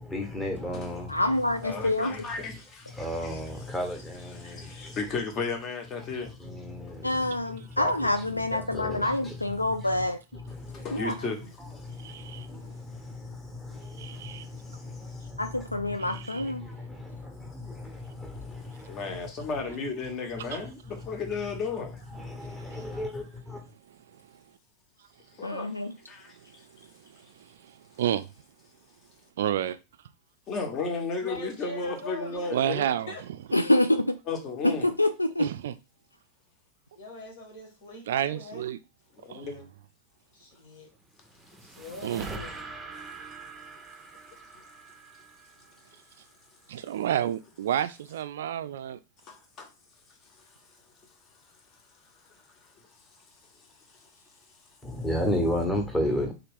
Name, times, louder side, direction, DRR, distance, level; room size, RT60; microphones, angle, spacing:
voice 1, 0.0-1.9 2.4-2.6 2.9-5.0 6.0-11.1 11.6-19.8 20.3-20.6 20.9-21.2 22.1-23.6 54.8-56.3, left 1 dB, 10° left, 1.1 m, -35 dB
voice 2, 1.1-2.1 7.0-10.2 10.9-11.2 15.4-16.6 25.4-25.9 33.5-34.1 34.6-35.5, left 1 dB, 85° left, 0.3 m, -26 dB
voice 3, 1.6-3.0 3.3-3.4 4.4-6.3 10.5-11.5 18.3-22.0 25.4-25.7 26.1-26.3 30.5-32.8 34.3-34.9 39.2-39.7 49.3-49.7, left 4 dB, 35° left, 1.1 m, -34 dB
voice 4, 12.0-12.5 14.0-14.5 16.0-16.5 20.5-20.6 24.3-24.4 26.3-28.3 29.4-29.8 32.5-33.1 33.5-33.6 35.4-35.7 38.1-38.8 39.3-39.5 42.0-42.4 46.7-49.0, right 10 dB, 60° right, 0.3 m, -31 dB
voice 5, 31.2-32.5 33.1-33.2 36.9-38.7 40.3-40.9 41.6-42.5, left 2 dB, 60° left, 1.7 m, -42 dB
sound 1, 40.9-46.3, right 3 dB, 15° right, 0.6 m, -44 dB
3.6 x 2.8 x 3.5 m
figure-of-eight pair, 90°, 0 cm